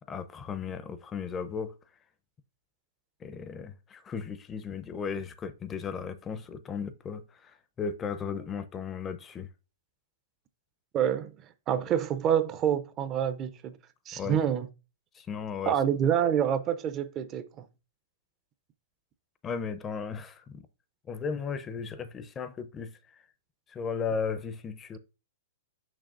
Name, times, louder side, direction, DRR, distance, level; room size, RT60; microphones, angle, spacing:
voice 1, 0.1-1.7 3.2-9.5 14.1-14.4 15.1-15.7 19.4-20.6 21.1-23.0 23.7-25.0, left 6 dB, 20° left, 0.6 m, -35 dB
voice 2, 10.9-11.3 11.7-13.8 14.1-14.7 15.7-17.5, right 9 dB, 30° right, 0.5 m, -27 dB
6.2 x 6.1 x 2.5 m
hypercardioid pair, 115°, 0 cm